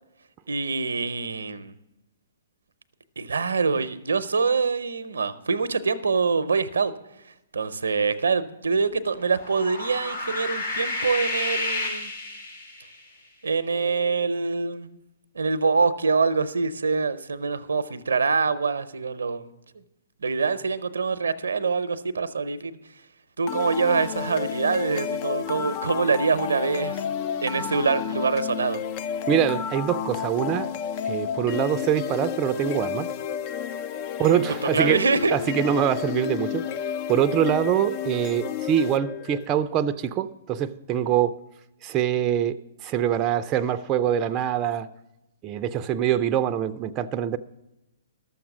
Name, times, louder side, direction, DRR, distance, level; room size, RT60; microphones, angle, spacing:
voice 1, 0.5-1.7 3.2-6.9 7.5-12.1 13.4-15.0 15.3-19.5 20.2-22.8 23.4-28.8 34.2-34.3 34.7-35.3, right 4 dB, 85° right, 13 dB, 0.6 m, -25 dB
sound 1, 9.2-12.9, left 2 dB, 75° left, 3.1 m, -31 dB
sound 2, 23.5-39.5, left 8 dB, 40° left, 0.4 m, -31 dB
voice 2, 29.3-30.7 31.0-33.1 34.2-35.0 35.3-36.7 37.1-41.4 41.8-44.9 45.4-47.4, right 9 dB, 30° right, 8 dB, 0.4 m, -24 dB
12.0 x 7.2 x 6.0 m, 0.92 s
hypercardioid pair, 130°, 0 cm